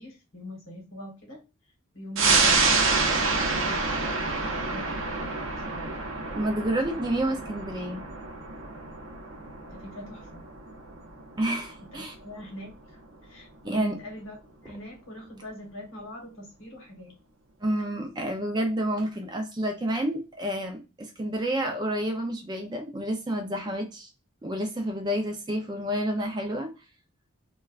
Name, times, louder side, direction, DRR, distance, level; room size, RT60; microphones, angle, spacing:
voice 1, 0.0-1.4 1.9-6.0 6.9-7.0 9.7-10.4 11.8-17.2 25.0-25.1, equal, 60° left, 1 dB, 1.2 m, -44 dB
sound 1, 2.2-13.1 13.5-13.6, right 3 dB, 65° right, 0.7 m, -28 dB
voice 2, 6.3-8.1 11.4-12.1 13.6-13.9 17.6-24.1 24.4-26.7, right 1 dB, 20° right, 4 dB, 0.4 m, -29 dB
3.2 x 2.2 x 2.3 m, 0.29 s
head